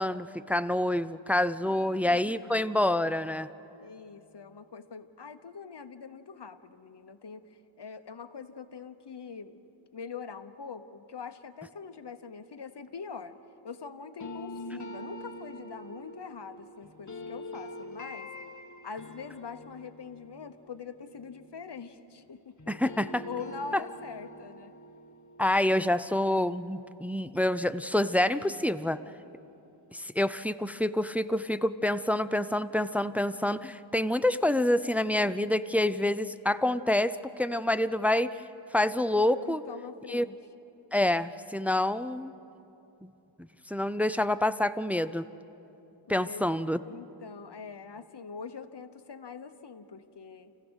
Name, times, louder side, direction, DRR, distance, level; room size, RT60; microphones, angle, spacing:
voice 1, 0.0-3.5 22.7-23.2 25.4-29.0 29.9-38.4 38.7-39.6 40.1-40.3 40.9-42.3 43.0-43.1 43.7-45.2 46.1-46.8, left 1 dB, 5° right, 12 dB, 0.5 m, -27 dB
voice 2, 1.7-2.5 3.8-7.5 7.8-9.6 9.9-13.4 13.6-18.3 18.8-22.8 23.3-24.7 39.4-40.4 46.1-46.5 46.9-50.5, left 5 dB, 60° left, 9 dB, 1.1 m, -43 dB
sound 1, 14.2-22.3 22.6-27.5, left 1 dB, 40° left, 1.3 m, -45 dB
29.0 x 15.5 x 6.3 m, 2.9 s
cardioid pair, 40°, 47 cm